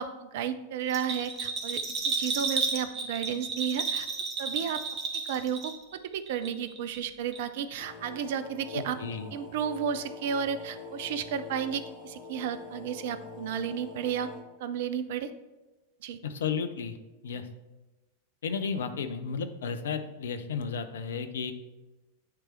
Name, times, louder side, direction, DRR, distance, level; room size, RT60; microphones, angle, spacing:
voice 1, 0.0-4.1 4.4-4.8 5.3-9.0 9.3-14.3 14.6-15.3 16.0-16.2, right 8 dB, 55° right, 11 dB, 0.5 m, -33 dB
Bell, 0.9-6.0 6.3-7.0 7.3-7.4, right 4 dB, 35° right, 1.3 m, -32 dB
sound 1, 7.8-14.4, left 3 dB, 45° left, 1.3 m, -45 dB
voice 2, 8.7-9.3 16.2-17.0 17.2-17.5 18.4-21.5, left 6 dB, 65° left, 9 dB, 0.6 m, -33 dB
9.3 x 3.3 x 4.5 m, 1.1 s
figure-of-eight pair, 90°, 0 cm